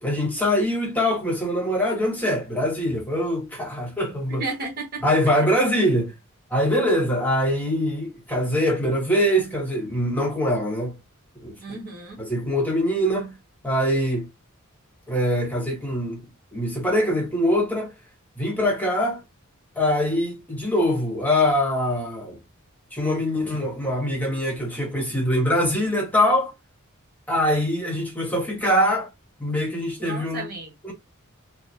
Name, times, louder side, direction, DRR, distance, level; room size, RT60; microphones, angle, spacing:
voice 1, 0.0-4.4 5.0-6.1 6.5-11.0 11.4-11.5 12.2-13.4 13.6-14.3 15.1-16.3 16.5-17.9 18.4-19.2 19.8-22.4 22.9-26.5 27.3-29.1 29.4-30.5 30.8-30.9, equal, 5° left, 1.1 m, -23 dB
voice 2, 4.3-5.0 11.6-12.2 30.0-30.7, right 3 dB, 45° right, 1.2 m, -33 dB
3.1 x 2.0 x 2.6 m
head